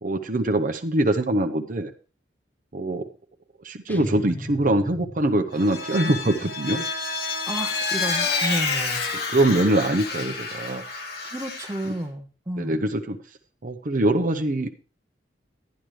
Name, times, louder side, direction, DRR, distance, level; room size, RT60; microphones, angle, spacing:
voice 1, 0.0-1.9 2.7-3.1 3.6-6.9 9.1-10.8 11.8-11.9 12.6-13.2 13.6-14.7, right 1 dB, 45° right, 6 dB, 0.7 m, -23 dB
sound 1, 3.9-5.9, equal, 10° left, 0.6 m, -36 dB
Vehicle, 5.5-11.9, left 4 dB, 60° left, 1.8 m, -29 dB
voice 2, 7.5-9.0 11.2-12.8, right 1 dB, 15° right, 5 dB, 0.9 m, -31 dB
11.5 x 10.5 x 3.2 m, 0.35 s
head